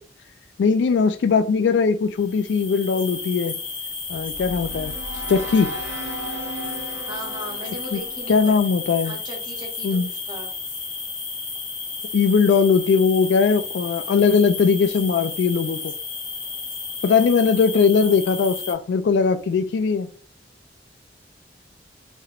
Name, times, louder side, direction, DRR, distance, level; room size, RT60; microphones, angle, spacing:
voice 1, 0.6-3.6 4.1-4.9 5.3-5.7 7.9-8.0 8.3-9.2 9.8-10.1 12.1-15.9 17.0-20.1, left 5 dB, 80° left, 0.3 m, -20 dB
sound 1, 2.2-18.7, left 4 dB, 30° left, 0.8 m, -33 dB
sound 2, 4.0-9.3, right 1 dB, 90° right, 1.2 m, -36 dB
voice 2, 7.0-8.5 9.0-10.5, equal, 25° right, 0.9 m, -37 dB
3.2 x 2.8 x 2.4 m
head